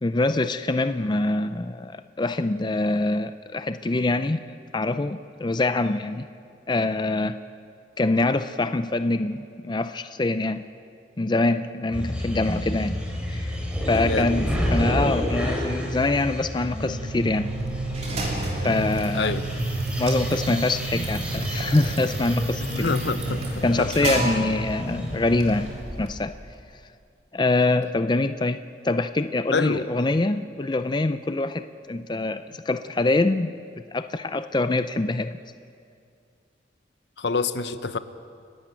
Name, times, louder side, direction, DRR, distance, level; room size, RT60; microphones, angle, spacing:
voice 1, 0.0-4.4 4.7-6.3 6.7-7.4 8.0-10.6 11.2-13.0 13.3-13.5 13.9-17.5 18.5-19.4 20.0-23.0 23.6-25.7 26.0-26.3 27.3-28.6 28.8-33.5 33.9-35.3, left 2 dB, 25° left, 0.5 m, -24 dB
sound 1, 11.9-25.7, equal, 5° right, 3.7 m, -29 dB
voice 2, 14.0-14.3 19.1-19.4 22.6-23.9 29.5-29.9 37.2-38.0, left 4 dB, 70° left, 0.9 m, -27 dB
sound 2, 17.3-26.6, right 2 dB, 40° right, 3.2 m, -34 dB
30.0 x 12.0 x 9.0 m
head